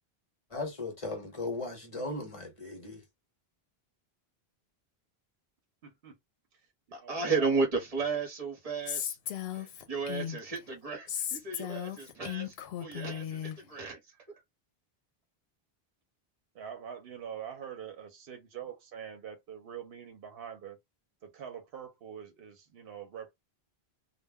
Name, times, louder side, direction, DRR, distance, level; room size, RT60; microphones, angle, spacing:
voice 1, 0.5-3.0, left 2 dB, 35° left, 0.9 m, -37 dB
voice 2, 5.8-6.2 7.0-7.5 16.5-20.8 21.2-23.3, right 8 dB, 70° right, 0.9 m, -44 dB
voice 3, 6.9-9.2 9.5-14.0, right 4 dB, 40° right, 0.9 m, -33 dB
Female speech woman speaking, 8.9-10.6 11.1-13.6, left 10 dB, 80° left, 0.8 m, -36 dB
2.2 x 2.1 x 3.4 m
omnidirectional pair, 1.0 m